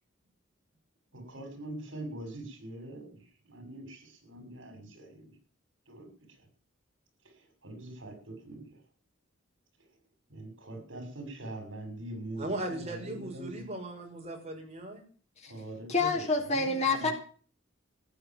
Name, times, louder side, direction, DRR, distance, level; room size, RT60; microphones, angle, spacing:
voice 1, 1.1-5.2 5.9-6.1 6.4-6.5 7.2-8.8 10.3-13.7 15.5-16.2 16.5-17.1, right 1 dB, 75° right, 5 dB, 6.4 m, -43 dB
voice 2, 12.4-15.0, right 1 dB, 35° right, 2 dB, 6.3 m, -38 dB
voice 3, 15.9-17.1, left 3 dB, 35° left, 1 dB, 4.0 m, -28 dB
14.5 x 10.5 x 7.5 m, 0.41 s
head